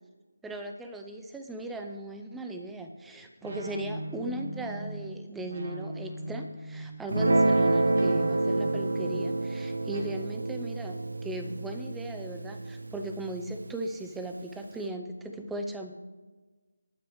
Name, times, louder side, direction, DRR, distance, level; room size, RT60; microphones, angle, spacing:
voice 1, 0.4-16.0, right 1 dB, 5° right, 4 dB, 0.6 m, -38 dB
sound 1, 3.4-10.0, right 1 dB, 50° right, 2.7 m, -40 dB
Guitar, 7.1-13.7, right 2 dB, 75° right, 0.7 m, -28 dB
20.0 x 9.3 x 3.2 m, 1.3 s
figure-of-eight pair, 170°, 0 cm